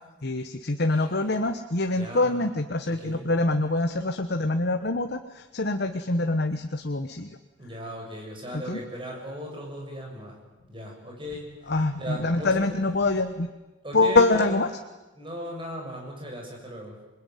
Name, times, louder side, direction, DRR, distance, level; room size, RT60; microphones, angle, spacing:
voice 1, 0.2-7.4 8.5-8.8 11.7-13.5 13.9-14.7, left 2 dB, 55° left, 7 dB, 1.2 m, -25 dB
voice 2, 2.0-2.4 2.9-3.3 7.6-10.4 10.7-12.6 13.8-14.5 15.2-17.0, equal, 25° right, 0 dB, 7.1 m, -37 dB
27.0 x 20.5 x 9.3 m, 1.1 s
head